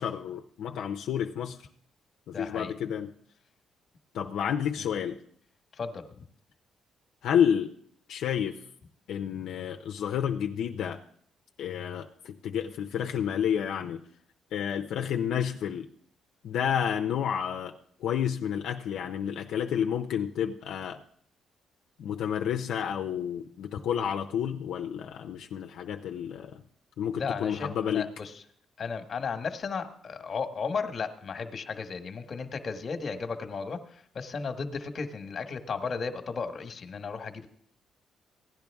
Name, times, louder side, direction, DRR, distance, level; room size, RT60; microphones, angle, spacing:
voice 1, 0.0-1.6 2.3-3.1 4.1-5.2 7.2-7.7 8.1-8.6 9.1-11.0 11.6-14.0 14.5-15.9 16.4-21.0 22.0-26.6 27.0-28.1, left 8 dB, 80° left, 4 dB, 0.7 m, -30 dB
voice 2, 2.3-2.7 4.8-4.9 5.7-6.2 27.2-28.4 28.8-37.5, left 5 dB, 45° left, 7 dB, 1.4 m, -35 dB
16.5 x 10.5 x 3.5 m, 0.64 s
cardioid pair, 90°, 0 cm